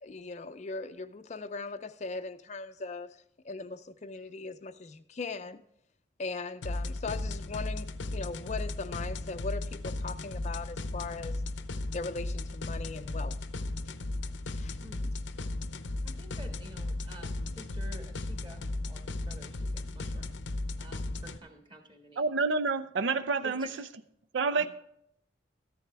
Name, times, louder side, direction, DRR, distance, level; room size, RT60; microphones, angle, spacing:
voice 1, 0.0-3.2 3.4-5.6 6.2-11.4 11.9-13.4 14.5-14.8, left 3 dB, 35° left, 0.4 m, -39 dB
sound 1, 6.6-21.4, left 2 dB, 75° left, 0.7 m, -36 dB
voice 2, 14.8-15.1 16.0-20.3 20.8-22.3 23.4-23.7 24.6-24.7, right 1 dB, 25° right, 1.9 m, -50 dB
voice 3, 22.2-23.7 24.3-24.7, right 4 dB, 75° right, 0.5 m, -28 dB
13.5 x 10.5 x 3.4 m
head